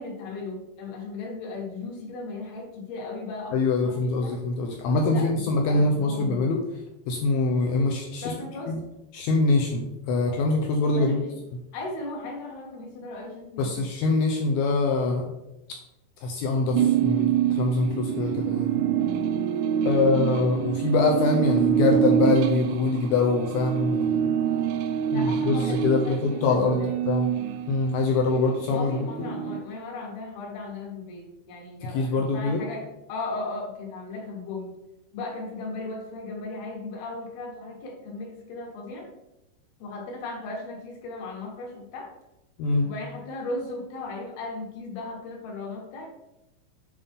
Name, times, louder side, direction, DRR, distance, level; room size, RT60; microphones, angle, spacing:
voice 1, 0.0-3.6 3.8-4.3 5.1-6.5 8.2-8.7 10.9-11.3 11.7-13.8 19.9-20.2 25.1-26.9 28.7-34.7 35.1-39.1 39.8-42.1 42.8-46.1, left 3 dB, 65° left, 0 dB, 3.1 m, -36 dB
voice 2, 3.5-6.8 7.1-8.3 8.7-8.8 9.1-11.2 13.6-15.3 16.2-18.8 19.8-24.3 25.1-27.3 27.7-29.3 31.8-32.7 42.6-42.9, left 3 dB, 85° left, 1 dB, 2.2 m, -24 dB
sound 1, 16.7-28.1 28.6-29.6, right 9 dB, 85° right, 2.7 m, -26 dB
8.4 x 5.3 x 3.6 m, 0.92 s
omnidirectional pair, 5.4 m